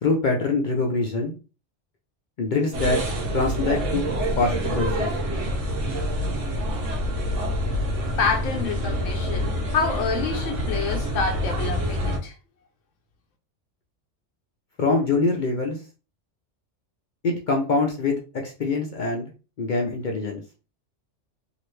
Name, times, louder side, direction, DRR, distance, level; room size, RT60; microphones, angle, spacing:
voice 1, 0.0-1.3 2.4-3.0 3.3-4.1 4.4-5.1 14.8-15.8 17.2-19.3 19.6-20.4, left 3 dB, 55° left, 0.5 m, -24 dB
sound 1, 2.7-12.2, equal, 80° right, 1.1 m, -26 dB
voice 2, 8.2-12.4, left 5 dB, 90° left, 1.1 m, -27 dB
2.8 x 2.5 x 3.1 m
omnidirectional pair, 1.3 m